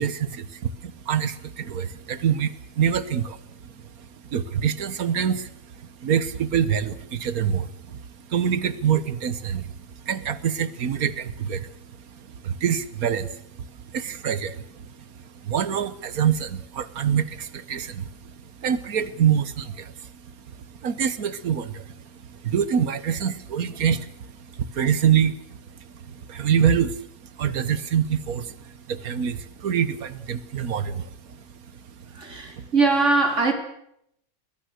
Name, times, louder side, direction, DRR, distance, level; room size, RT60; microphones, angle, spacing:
voice 1, 0.0-3.6 4.0-8.0 8.3-14.9 15.4-18.1 18.4-20.3 20.6-31.4 31.7-31.8 32.5-32.7, right 8 dB, 85° right, 15 dB, 1.7 m, -26 dB
voice 2, 32.1-33.5, right 3 dB, 55° right, 4 dB, 3.8 m, -21 dB
23.0 x 20.5 x 6.6 m, 0.76 s
omnidirectional pair, 1.5 m